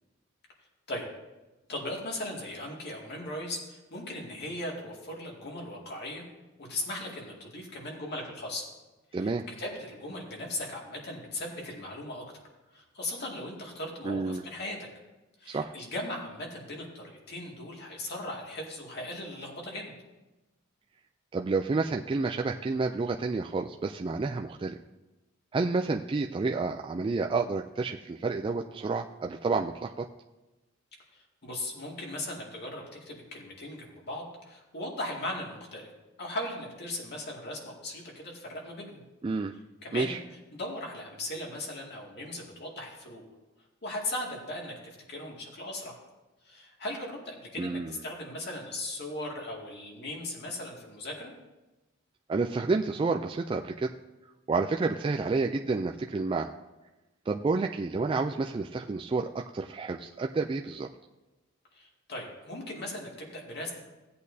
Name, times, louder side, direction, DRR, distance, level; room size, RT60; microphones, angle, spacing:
voice 1, 1.7-6.2 6.6-8.6 9.1-12.4 12.7-14.8 15.4-19.9 31.1-35.9 36.2-39.0 39.8-43.2 43.8-45.9 46.4-51.3 61.7-63.8, left 1 dB, 55° left, -1 dB, 2.3 m, -38 dB
voice 2, 9.1-9.4 14.0-14.4 15.5-15.7 21.3-24.8 25.5-30.1 39.2-39.5 39.9-40.2 47.6-47.9 52.3-53.9 54.5-56.5 57.3-60.9, right 3 dB, 25° right, 2 dB, 0.3 m, -30 dB
16.5 x 8.4 x 2.7 m, 1.1 s
head